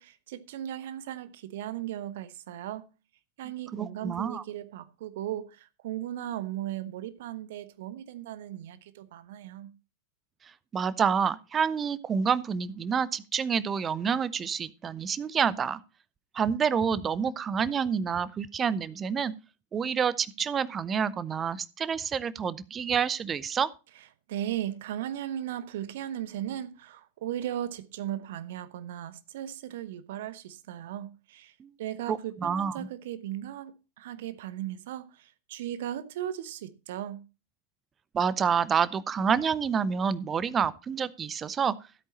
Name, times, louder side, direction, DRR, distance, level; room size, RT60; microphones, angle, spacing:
voice 1, 0.0-2.9 3.4-9.7 24.3-37.2, right 12 dB, 55° right, 0.8 m, -37 dB
voice 2, 3.7-4.4 10.7-15.8 16.3-19.3 19.7-23.7 31.6-31.7 32.1-32.9 38.1-41.7, right 7 dB, 20° right, 0.7 m, -28 dB
13.5 x 8.3 x 4.1 m
figure-of-eight pair, 90°, 0 cm